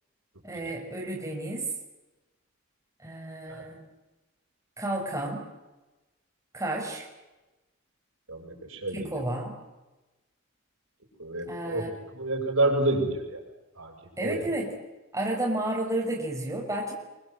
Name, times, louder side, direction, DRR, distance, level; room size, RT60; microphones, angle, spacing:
voice 1, 0.4-1.7 3.0-3.8 4.8-5.5 6.5-7.1 8.9-9.6 11.5-11.9 14.2-14.7 15.1-16.9, right 1 dB, 15° right, -1 dB, 5.5 m, -31 dB
voice 2, 8.3-9.1 11.2-11.9 12.2-13.4 13.8-13.9 14.2-14.5, right 2 dB, 80° right, 2 dB, 7.0 m, -28 dB
25.0 x 23.5 x 7.8 m, 1.1 s
head